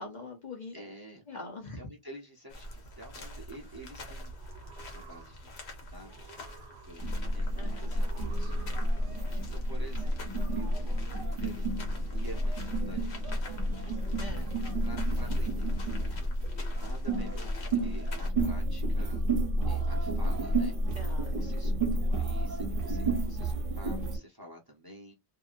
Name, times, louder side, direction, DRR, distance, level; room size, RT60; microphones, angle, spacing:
voice 1, 0.0-0.8 1.3-1.8 7.6-7.9 14.1-14.5 20.9-21.4, left 2 dB, 45° left, 0.9 m, -43 dB
voice 2, 0.7-1.2 1.8-14.0 14.3-14.5 14.8-16.3 16.6-19.2 19.6-20.8 21.3-25.1, right 1 dB, 25° right, 0.8 m, -50 dB
sound 1, 2.5-18.3, equal, 75° left, 1.2 m, -45 dB
sound 2, 4.2-5.7 6.0-7.3 8.0-9.3, right 7 dB, 85° right, 0.9 m, -52 dB
sound 3, 7.0-24.2, right 1 dB, 55° right, 1.0 m, -30 dB
2.7 x 2.6 x 2.5 m
omnidirectional pair, 1.1 m